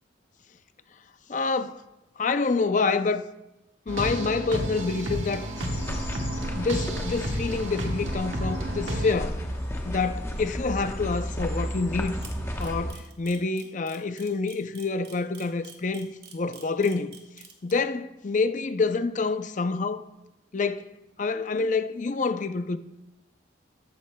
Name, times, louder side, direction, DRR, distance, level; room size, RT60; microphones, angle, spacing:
voice 1, 1.3-1.8 2.2-3.2 3.9-5.5 6.5-9.4 9.8-12.2 12.6-17.2 17.6-20.0 20.5-20.9 21.2-22.8, left 4 dB, 40° left, 0.5 m, -27 dB
sound 1, 3.9-9.1, right 1 dB, 85° right, 1.7 m, -31 dB
sound 2, 5.6-12.9, equal, 15° left, 1.0 m, -33 dB
Camera, 12.2-17.7, right 7 dB, 55° right, 1.9 m, -46 dB
14.5 x 13.0 x 2.2 m
head